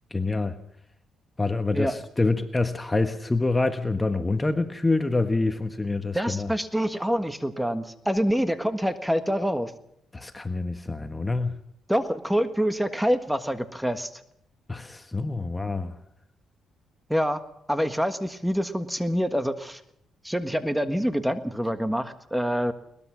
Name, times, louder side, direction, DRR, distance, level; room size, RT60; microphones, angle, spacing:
voice 1, 0.1-0.6 1.4-6.5 10.1-11.6 14.7-15.9, left 3 dB, 15° left, 8 dB, 1.4 m, -26 dB
voice 2, 6.1-9.7 11.9-14.1 17.1-17.4 17.7-19.8 20.2-22.7, equal, 5° right, 9 dB, 1.5 m, -26 dB
21.5 x 20.0 x 6.2 m, 0.74 s
cardioid pair, 90°, 0 cm